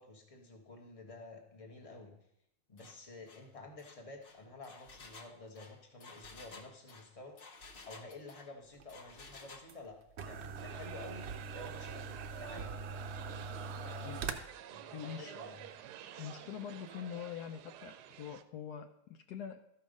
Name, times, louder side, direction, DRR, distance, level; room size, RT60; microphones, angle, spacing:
voice 1, 0.0-2.2 2.7-7.4 7.8-12.8 13.7-14.2 14.7-15.6, left 3 dB, 20° left, 3 dB, 1.3 m, -51 dB
Engine, 2.8-3.0 3.3-3.5 3.8-8.5 8.9-9.7, left 3 dB, 40° left, 0.9 m, -54 dB
sound 1, 8.7-14.3, right 5 dB, 55° right, 0.8 m, -42 dB
sound 2, 10.6-18.4, right 10 dB, 80° right, 1.2 m, -50 dB
voice 2, 14.9-15.3 16.2-19.6, left 9 dB, 75° left, 8 dB, 1.1 m, -44 dB
13.0 x 5.7 x 5.1 m, 0.79 s
omnidirectional pair, 1.7 m